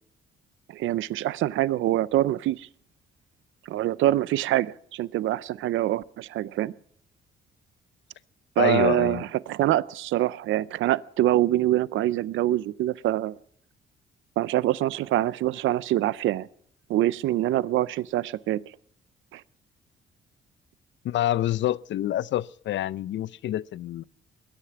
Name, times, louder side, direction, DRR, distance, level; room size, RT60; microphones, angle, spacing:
voice 1, 0.7-2.7 3.7-6.7 8.6-13.4 14.4-16.5 16.9-18.6 19.3-19.4, right 14 dB, 75° right, 0.5 m, -25 dB
voice 2, 8.6-9.2 21.0-24.0, left 13 dB, 70° left, 0.6 m, -27 dB
21.5 x 10.0 x 5.8 m
cardioid pair, 90°, 20 cm